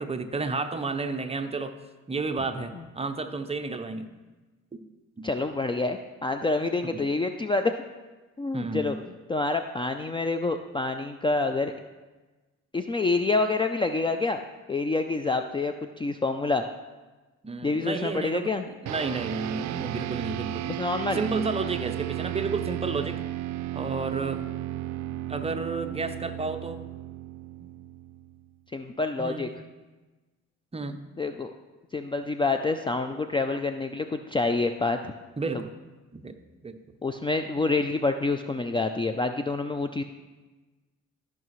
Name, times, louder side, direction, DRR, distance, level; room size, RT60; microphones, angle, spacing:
voice 1, 0.0-1.8 2.1-4.1 4.7-4.8 5.2-5.3 6.9-7.0 8.5-9.0 17.4-20.8 21.1-23.2 23.7-24.4 25.3-26.8 27.6-27.7 29.2-29.6 30.7-31.0 35.4-35.7 36.1-36.4 36.6-36.8 37.6-37.7, right 3 dB, 20° right, 7 dB, 0.6 m, -31 dB
voice 2, 5.2-7.7 8.4-9.0 9.3-11.7 12.7-14.4 14.7-16.6 17.6-18.6 20.7-21.2 28.7-29.5 31.2-31.5 31.9-35.1 37.0-40.0, left 3 dB, 15° left, 7 dB, 0.4 m, -27 dB
sound 1, 18.9-28.5, right 14 dB, 65° right, 0.4 m, -34 dB
13.5 x 5.8 x 3.1 m, 1.2 s
cardioid pair, 90°, 30 cm